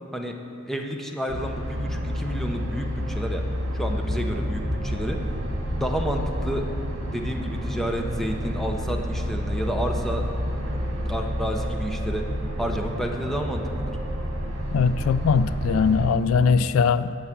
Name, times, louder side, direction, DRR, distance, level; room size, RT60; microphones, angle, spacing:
voice 1, 0.7-3.4 3.7-5.2 5.8-6.7 7.1-10.3 11.1-12.3 12.6-13.9, equal, ahead, 2 dB, 0.8 m, -30 dB
sound 1, 1.3-16.1, equal, 65° right, 1.7 m, -29 dB
voice 2, 14.7-17.2, left 5 dB, 80° left, 15 dB, 0.3 m, -21 dB
14.0 x 4.8 x 8.5 m, 2.9 s
head